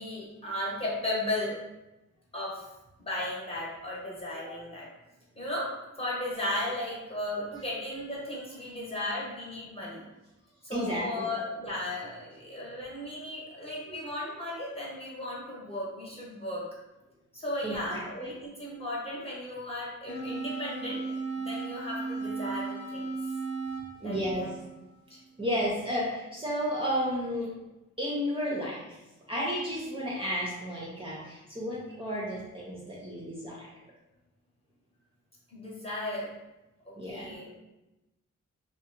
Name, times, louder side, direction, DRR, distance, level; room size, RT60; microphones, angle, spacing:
voice 1, 0.0-1.6 2.3-2.6 3.0-4.9 5.4-5.7 6.0-10.0 10.6-16.6 17.3-21.0 21.4-23.1 24.0-24.6 25.1-25.2 35.5-36.3 37.1-37.5, left 1 dB, 20° left, -6 dB, 0.9 m, -35 dB
voice 2, 10.7-11.3 13.9-14.0 17.6-18.3 24.0-24.5 25.4-27.5 28.0-29.0 29.3-33.7 37.0-37.4, equal, 20° right, -6 dB, 0.5 m, -32 dB
sound 1, 20.1-25.1, right 4 dB, 70° left, 0.8 m, -36 dB
2.7 x 2.1 x 2.5 m, 0.99 s
wide cardioid pair, 95°, 31 cm